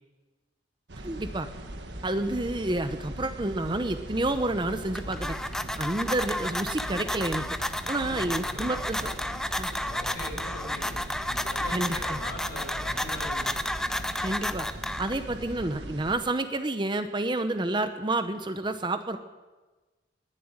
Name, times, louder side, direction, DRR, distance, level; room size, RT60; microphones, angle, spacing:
sound 1, 0.9-16.2, right 1 dB, 70° right, 1.5 m, -40 dB
voice 1, 1.0-1.5 2.0-5.4 5.8-7.4 7.9-9.1 9.6-9.7 11.7-12.2 14.2-14.7 15.0-19.2, right 2 dB, 25° right, 9 dB, 0.8 m, -29 dB
sound 2, 4.7-15.4, left 1 dB, 5° left, 0.5 m, -32 dB
voice 2, 8.0-9.2 9.5-11.0 11.2-13.6, left 1 dB, 60° left, -2 dB, 6.8 m, -42 dB
20.5 x 7.7 x 8.9 m, 1.2 s
head